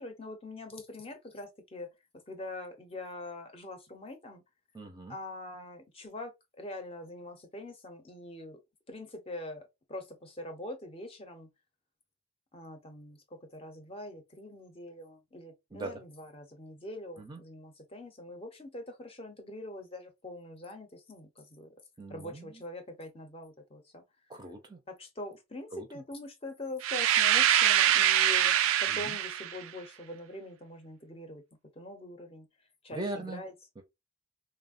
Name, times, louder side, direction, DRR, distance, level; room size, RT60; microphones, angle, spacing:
voice 1, 0.0-4.4 5.1-8.6 8.9-11.5 12.5-21.7 22.1-24.0 24.9-31.4 31.7-32.5 32.8-33.5, left 2 dB, 30° left, 0.5 m, -44 dB
voice 2, 4.7-5.2 15.7-16.0 17.2-17.4 22.0-22.6 24.3-24.8 25.7-25.9 28.9-29.2 32.9-33.4 33.8-33.9, right 2 dB, 20° right, 0.4 m, -40 dB
sound 1, 26.8-29.6, right 11 dB, 85° right, 0.3 m, -24 dB
3.3 x 2.0 x 2.4 m
head